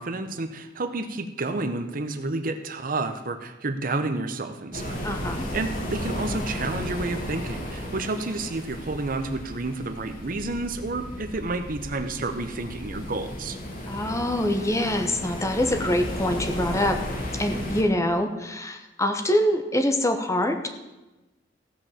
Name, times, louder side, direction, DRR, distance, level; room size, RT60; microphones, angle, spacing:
voice 1, 0.0-5.1 5.5-13.6, right 2 dB, 50° right, 9 dB, 0.9 m, -30 dB
sound 1, 4.7-17.8, equal, 50° left, 2.2 m, -34 dB
voice 2, 5.0-5.4 13.9-17.0 17.4-20.7, left 1 dB, 15° left, 6 dB, 1.0 m, -25 dB
15.0 x 5.5 x 7.2 m, 1.1 s
head